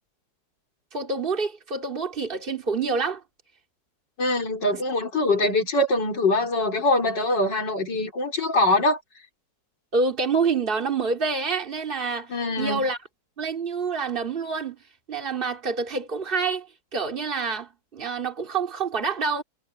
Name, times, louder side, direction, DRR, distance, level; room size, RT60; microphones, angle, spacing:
voice 1, 0.9-3.2 5.1-5.3 9.9-13.0 13.4-14.8 15.1-19.4, right 4 dB, 30° right, 2.8 m, -27 dB
voice 2, 4.2-9.0 12.3-12.9, left 2 dB, 75° left, 4.6 m, -23 dB
omnidirectional pair, 1.9 m